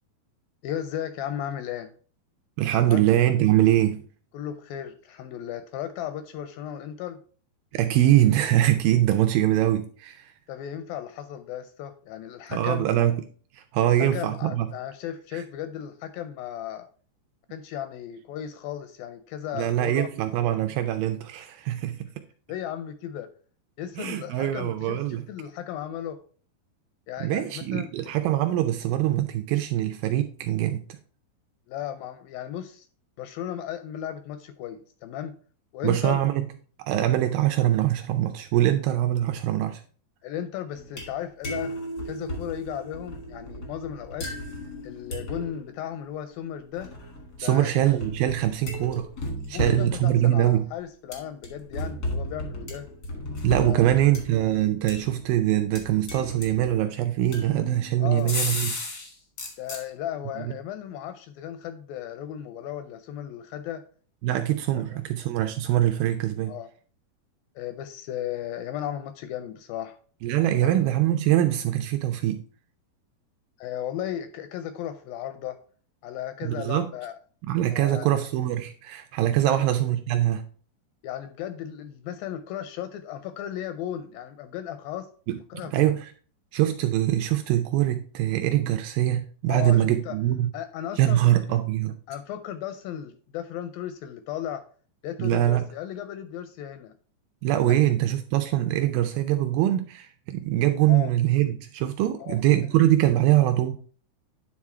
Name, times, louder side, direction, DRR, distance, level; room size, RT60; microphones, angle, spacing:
voice 1, 0.6-1.9 2.9-3.0 4.3-7.2 10.5-12.8 13.8-16.9 17.5-20.1 22.5-23.3 23.8-26.2 27.1-27.9 31.7-32.9 33.2-35.3 35.7-36.2 40.2-41.7 42.1-44.3 44.8-46.9 47.4-47.7 49.5-52.9 53.6-53.9 58.0-58.4 59.6-63.8 64.7-65.0 66.5-66.7 67.6-70.0 70.6-70.8 73.6-75.6 76.0-77.2 77.7-78.1 79.4-79.6 81.0-85.1 85.5-85.9 89.5-90.2 90.5-91.2 92.1-94.6 95.0-96.9 97.6-97.8 100.9-101.1 102.2-102.4, left 10 dB, 85° left, 10 dB, 2.1 m, -35 dB
voice 2, 2.6-4.0 7.7-10.3 12.5-13.2 13.5-14.7 15.3-15.4 19.5-22.1 24.0-25.3 27.2-30.8 35.8-36.5 36.8-39.8 47.4-49.1 49.5-50.7 53.4-58.8 60.4-60.5 64.2-66.5 70.2-72.4 76.4-76.9 77.5-80.4 85.3-86.1 86.5-90.5 91.0-92.0 95.2-95.7 97.4-103.8, right 13 dB, 85° right, 7 dB, 2.1 m, -23 dB
sound 1, 40.7-41.2 41.4-45.7 46.8-50.6 51.1-55.4 55.7-56.8 57.3-59.1 59.4-59.8, left 1 dB, 65° left, 0.9 m, -35 dB
9.6 x 3.6 x 4.3 m, 0.42 s
omnidirectional pair, 4.4 m